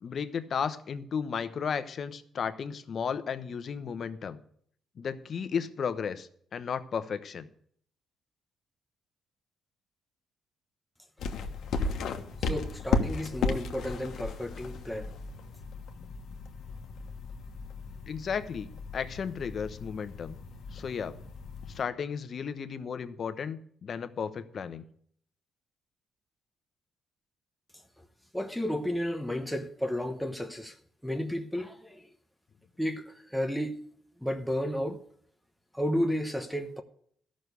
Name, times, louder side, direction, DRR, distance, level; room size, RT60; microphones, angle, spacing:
voice 1, 0.0-4.4 5.0-7.5 18.1-20.4 20.7-21.2 21.7-24.8, left 6 dB, 50° left, 0.9 m, -34 dB
sound 1, 11.2-21.8, left 4 dB, 70° left, 1.3 m, -35 dB
voice 2, 12.4-15.1 28.3-30.8 31.0-32.1 32.8-33.8 34.2-35.0 35.7-36.8, equal, ahead, 1.0 m, -32 dB
13.0 x 6.4 x 6.8 m
cardioid pair, 90°, 0 cm